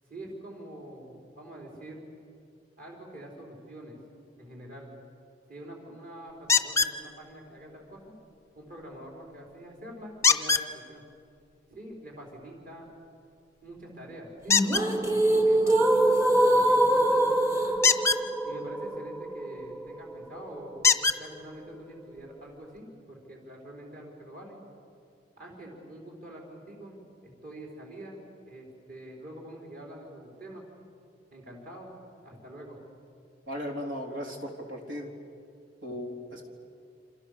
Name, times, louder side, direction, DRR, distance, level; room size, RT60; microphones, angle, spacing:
voice 1, 0.0-2.0 2.8-4.0 4.4-5.0 5.5-8.1 8.6-11.0 11.7-12.9 13.6-17.8 18.4-24.6 25.4-30.7 31.3-31.9 32.2-32.8 36.3-36.5, right 1 dB, 45° right, -1 dB, 4.9 m, -45 dB
sound 1, 6.5-7.0 10.2-10.7 14.5-14.8 17.8-18.2 19.9-20.0 20.8-21.2 22.2-22.3 22.8-22.9, left 5 dB, 15° left, 0.7 m, -22 dB
sound 2, 14.5-20.5, right 1 dB, 15° right, 1.2 m, -24 dB
voice 2, 33.5-35.1 35.8-36.5, equal, 75° right, 2 dB, 3.8 m, -36 dB
28.0 x 26.5 x 6.9 m, 2.4 s
head